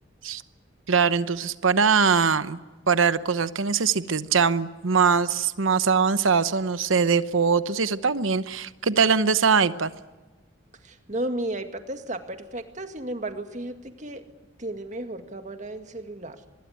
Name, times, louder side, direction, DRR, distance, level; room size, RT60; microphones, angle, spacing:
voice 1, 0.9-2.6 2.9-9.9, right 5 dB, 80° right, 13 dB, 0.9 m, -22 dB
voice 2, 10.8-14.2 14.6-16.4, right 1 dB, 35° right, 7 dB, 2.0 m, -34 dB
25.0 x 21.0 x 9.4 m, 1.2 s
head